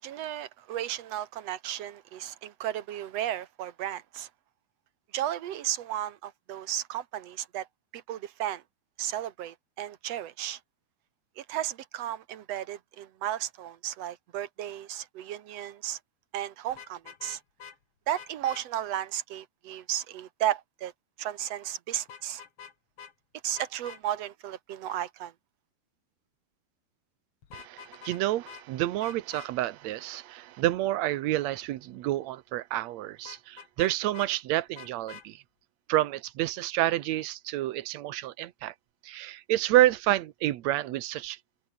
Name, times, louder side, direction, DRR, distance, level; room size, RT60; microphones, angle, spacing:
voice 1, 0.0-4.3 5.1-7.7 7.9-8.6 9.0-10.6 11.4-16.0 16.3-17.4 18.1-20.9 21.2-22.4 23.4-25.3, right 11 dB, 55° right, 2.0 m, -34 dB
Vehicle horn car horn honking, 16.7-17.8 18.1-18.6 22.1-22.7 23.0-23.1 23.6-24.0 27.4-28.2 28.5-28.6 29.0-29.5 33.3-34.3 34.8-35.3, left 7 dB, 45° left, 2.7 m, -46 dB
voice 2, 27.5-35.4 35.9-38.7 39.0-41.4, right 15 dB, 85° right, 1.5 m, -29 dB
omnidirectional pair, 4.4 m